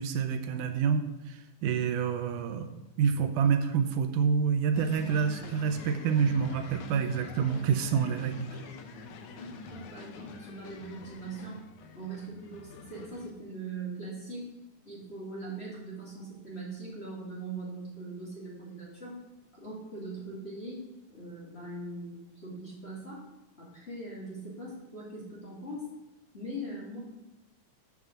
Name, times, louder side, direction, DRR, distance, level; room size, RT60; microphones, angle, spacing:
voice 1, 0.0-8.5, right 6 dB, 80° right, 7 dB, 2.2 m, -28 dB
sound 1, 4.7-13.3, left 5 dB, 75° left, 2.2 m, -46 dB
voice 2, 9.3-11.6 11.9-14.5 14.8-19.2 19.5-23.2 23.6-25.9 26.3-27.0, right 2 dB, 20° left, -6 dB, 2.4 m, -41 dB
7.7 x 5.9 x 7.2 m, 1.0 s
omnidirectional pair, 3.6 m